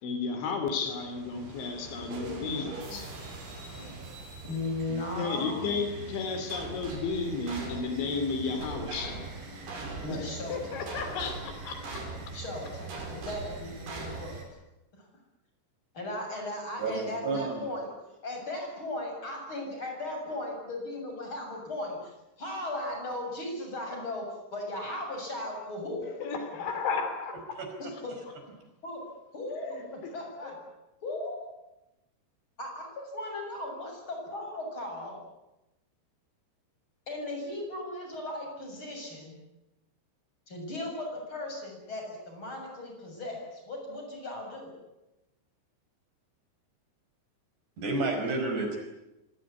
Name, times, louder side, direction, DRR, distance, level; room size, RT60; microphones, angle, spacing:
voice 1, 0.0-3.3 3.9-4.3 4.9-9.4 10.1-12.4 26.2-27.7 29.7-30.2 30.4-30.5, left 4 dB, 75° left, 7 dB, 5.3 m, -34 dB
sound 1, 0.9-14.4, right 3 dB, 75° right, 7.9 m, -41 dB
voice 2, 4.4-5.8 10.0-10.6 12.3-14.4 14.9-15.1 15.9-17.9 18.2-22.1 22.4-24.3 24.5-26.1 27.8-28.2 28.5-28.6 28.8-29.0 29.3-30.6 31.0-31.5 32.6-35.2 37.1-39.3 40.5-44.7, left 1 dB, 25° left, 2 dB, 7.8 m, -37 dB
voice 3, 16.8-17.7 27.6-27.9 47.8-48.8, right 3 dB, 60° right, 4 dB, 7.0 m, -31 dB
26.0 x 18.5 x 9.7 m, 0.96 s
omnidirectional pair, 5.4 m